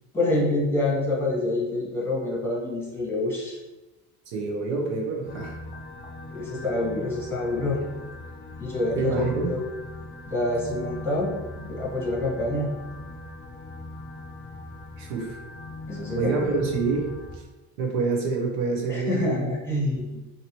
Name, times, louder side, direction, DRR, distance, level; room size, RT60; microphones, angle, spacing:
voice 1, 0.1-3.6 6.3-7.8 8.6-9.6 10.3-12.7 15.9-16.6 18.9-20.2, left 2 dB, 5° left, -5 dB, 1.2 m, -27 dB
voice 2, 4.3-5.6 9.0-9.5 15.0-15.4 16.1-17.1 17.3-17.4 17.8-19.5, right 4 dB, 80° right, 0 dB, 0.9 m, -27 dB
sound 1, 5.3-17.4, left 2 dB, 25° left, 0.4 m, -40 dB
2.8 x 2.6 x 3.0 m, 1.1 s
supercardioid pair, 90°, 46 cm